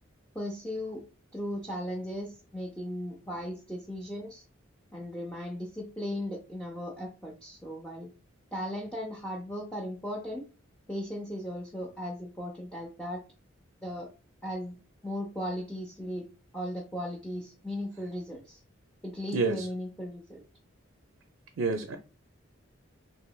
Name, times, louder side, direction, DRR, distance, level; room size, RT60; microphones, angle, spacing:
voice 1, 0.3-1.0 1.3-4.4 4.9-8.1 8.5-10.5 10.9-13.2 13.8-14.1 14.4-14.7 15.0-16.3 16.5-18.6 19.0-20.4, equal, 5° left, 0.5 m, -37 dB
voice 2, 21.6-21.9, right 3 dB, 75° right, 0.4 m, -27 dB
3.1 x 2.8 x 2.3 m
head